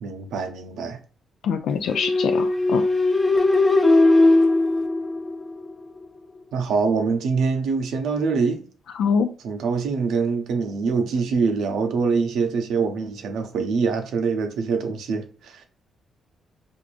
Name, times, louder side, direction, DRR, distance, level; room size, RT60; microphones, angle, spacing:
voice 1, 0.0-1.0 6.5-8.7 9.4-15.7, right 5 dB, 80° right, 0.6 m, -24 dB
voice 2, 1.4-2.8 9.0-9.3, left 6 dB, 75° left, 0.3 m, -24 dB
sound 1, 1.9-5.7, left 2 dB, 25° left, 0.7 m, -19 dB
4.6 x 2.5 x 2.5 m
cardioid pair, 70°, 0 cm